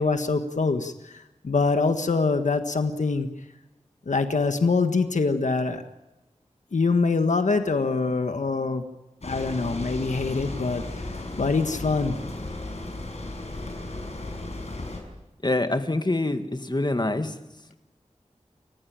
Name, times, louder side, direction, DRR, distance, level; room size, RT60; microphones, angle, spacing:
voice 1, 0.0-3.3 4.0-5.8 6.7-8.8 9.2-12.1, left 4 dB, 90° left, 7 dB, 1.5 m, -24 dB
sound 1, 9.2-15.0, left 2 dB, 65° left, 6.0 m, -35 dB
voice 2, 15.4-17.3, left 2 dB, 35° left, 8 dB, 2.1 m, -25 dB
29.5 x 15.5 x 8.8 m, 1.0 s
wide cardioid pair, 60°, 12 cm